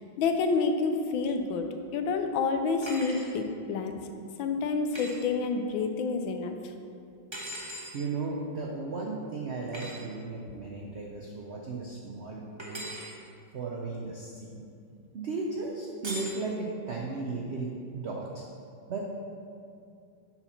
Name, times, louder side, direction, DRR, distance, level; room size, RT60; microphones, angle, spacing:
voice 1, 0.0-1.7 1.9-4.0 4.4-6.6, left 4 dB, 90° left, 6 dB, 1.4 m, -28 dB
sound 1, 2.8-3.3 4.9-5.2 7.3-7.9 9.7-10.0 12.6-13.1 16.0-16.4, right 1 dB, 20° right, 0.8 m, -39 dB
voice 2, 7.9-12.8 13.5-14.6 15.1-18.4 18.9-19.0, right 3 dB, 80° right, -1 dB, 0.6 m, -35 dB
7.9 x 4.5 x 5.6 m, 2.5 s
omnidirectional pair, 2.1 m